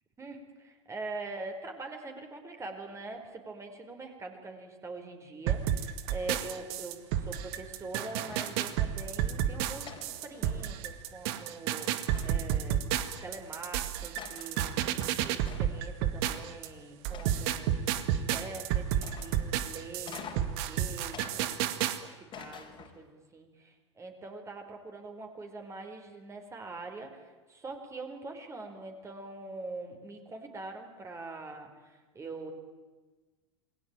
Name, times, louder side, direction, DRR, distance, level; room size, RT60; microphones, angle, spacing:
voice 1, 0.2-12.8 13.2-17.7 18.1-21.6 22.0-23.5 24.0-32.5, right 3 dB, 20° right, 4 dB, 4.6 m, -43 dB
sound 1, 5.5-16.7 17.0-22.0, right 11 dB, 50° right, 2.1 m, -31 dB
sound 2, 8.2-8.7 9.8-11.0 12.1-12.6 13.6-13.7 14.2-14.6 15.4-15.9 17.1-17.7 19.0-19.5 20.0-20.6 21.1-21.9 22.3-23.1, left 7 dB, 30° left, 4.4 m, -47 dB
28.0 x 21.0 x 9.1 m, 1.3 s
figure-of-eight pair, 90°, 16 cm